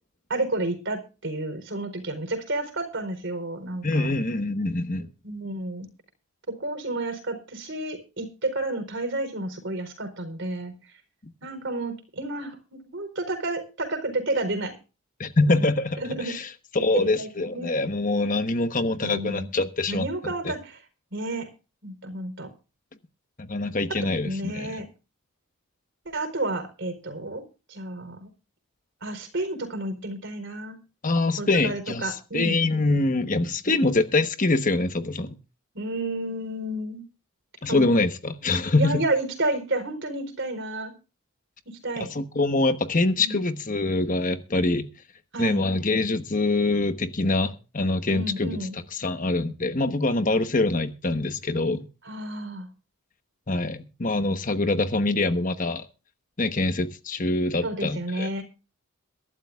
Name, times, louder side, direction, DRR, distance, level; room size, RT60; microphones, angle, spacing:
voice 1, 0.3-4.1 5.2-5.9 6.5-10.7 11.4-12.6 12.9-14.7 15.5-15.7 16.0-16.3 16.9-17.7 18.9-19.5 19.9-20.8 21.1-21.5 21.8-22.5 24.2-24.9 26.0-27.4 27.7-28.3 29.0-30.8 31.4-32.6 33.7-33.9 35.7-37.0 37.7-37.9 38.8-40.9 41.7-42.1 43.2-43.4 45.3-45.6 48.1-48.8 52.0-52.7 57.6-58.4, right 2 dB, 55° right, 4.3 m, -31 dB
voice 2, 3.8-5.1 15.2-20.1 23.4-24.8 31.0-35.3 37.6-39.0 42.0-44.9 45.4-51.9 53.5-55.9 56.4-58.3, left 2 dB, 35° left, 1.1 m, -24 dB
22.5 x 12.5 x 2.4 m
head